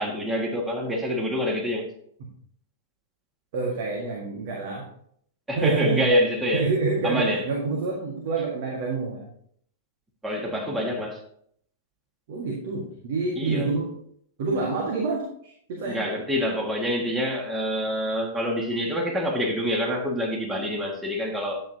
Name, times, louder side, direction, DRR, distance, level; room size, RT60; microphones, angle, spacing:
voice 1, 0.0-1.9 5.5-6.7 7.0-7.4 10.2-11.2 13.3-13.7 15.8-21.6, equal, 10° right, 1.9 m, -26 dB
voice 2, 3.5-4.9 5.5-6.1 6.5-9.3 10.5-10.9 12.3-13.9 14.4-16.0, right 4 dB, 50° right, 1.8 m, -28 dB
10.5 x 7.8 x 2.9 m
figure-of-eight pair, 100°, 0 cm